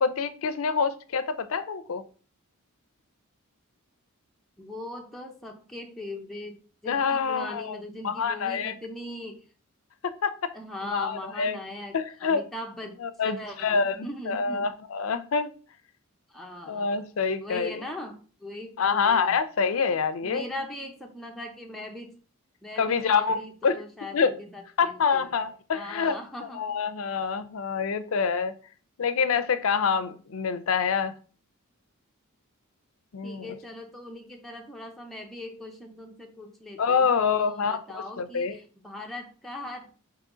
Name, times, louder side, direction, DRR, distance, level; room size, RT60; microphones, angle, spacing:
voice 1, 0.0-2.0 6.9-7.7 8.0-8.7 10.0-10.5 10.9-11.6 11.9-12.4 13.0-14.0 14.3-15.5 16.7-17.8 18.8-20.4 22.8-23.7 24.1-24.3 24.8-26.2 26.6-28.5 29.0-31.2 33.1-33.6 36.8-38.6, left 5 dB, 65° left, 0.5 m, -26 dB
voice 2, 4.6-9.5 10.5-14.7 16.3-17.0 17.4-19.4 20.2-22.2 22.6-25.3 25.7-26.7 33.2-39.9, left 1 dB, ahead, 0.5 m, -40 dB
3.8 x 2.9 x 4.9 m
head